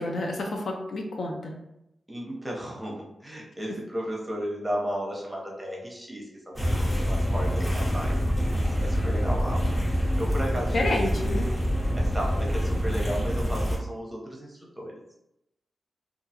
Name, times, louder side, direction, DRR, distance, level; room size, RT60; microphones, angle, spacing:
voice 1, 0.0-1.6 10.7-11.5, left 2 dB, 65° left, 1 dB, 0.4 m, -29 dB
voice 2, 2.1-11.1 11.9-15.0, equal, 10° right, -3 dB, 0.8 m, -34 dB
sound 1, 6.6-13.8, equal, 20° left, 0.9 m, -26 dB
2.4 x 2.3 x 2.7 m, 0.85 s
cardioid pair, 80°, 0 cm